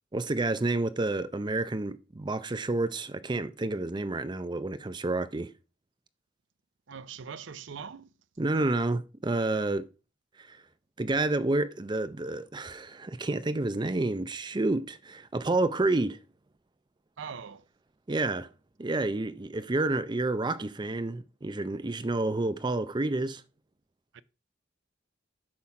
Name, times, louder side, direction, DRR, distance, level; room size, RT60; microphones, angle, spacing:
voice 1, 0.1-5.5 8.4-9.9 10.4-10.6 11.0-16.2 18.1-18.5 18.8-23.4, right 2 dB, 25° right, 0.5 m, -29 dB
voice 2, 6.9-8.1 17.2-17.6 24.1-24.2, right 6 dB, 75° right, 0.6 m, -41 dB
8.7 x 5.6 x 4.8 m
head